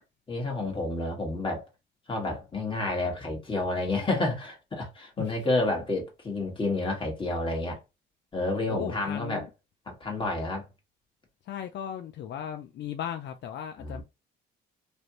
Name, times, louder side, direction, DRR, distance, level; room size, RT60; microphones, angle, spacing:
voice 1, 0.3-1.6 2.1-7.8 8.3-9.4 9.9-10.7 13.8-14.0, left 2 dB, 25° left, 1.7 m, -30 dB
voice 2, 8.7-9.5 11.4-14.0, left 9 dB, 60° left, 0.4 m, -36 dB
3.3 x 2.5 x 2.9 m
cardioid pair, 90°, 20 cm